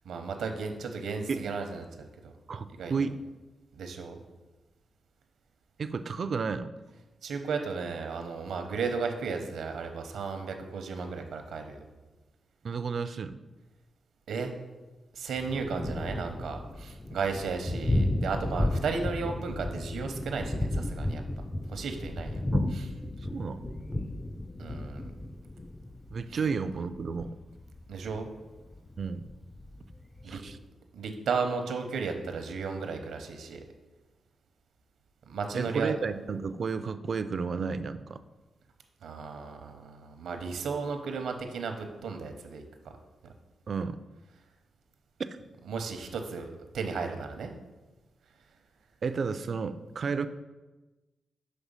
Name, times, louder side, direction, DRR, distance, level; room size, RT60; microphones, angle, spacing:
voice 1, 0.0-2.3 2.8-2.9 3.7-4.2 7.2-11.8 14.3-14.5 15.1-21.2 21.7-22.4 22.7-22.9 24.6-25.1 27.9-28.3 30.2-30.4 30.9-33.6 35.3-36.0 39.0-42.6 45.7-47.5, right 5 dB, 85° right, 6 dB, 0.7 m, -34 dB
voice 2, 2.5-3.2 5.8-6.7 12.6-13.4 22.5-22.8 23.3-23.6 26.1-27.4 29.0-29.3 30.3-30.6 35.5-38.2 43.7-44.0 49.0-50.3, right 5 dB, 55° right, 12 dB, 0.3 m, -32 dB
Thunder, 15.4-30.6, left 1 dB, 20° left, 0.3 m, -33 dB
6.1 x 3.3 x 5.5 m, 1.2 s
cardioid pair, 80°, 0 cm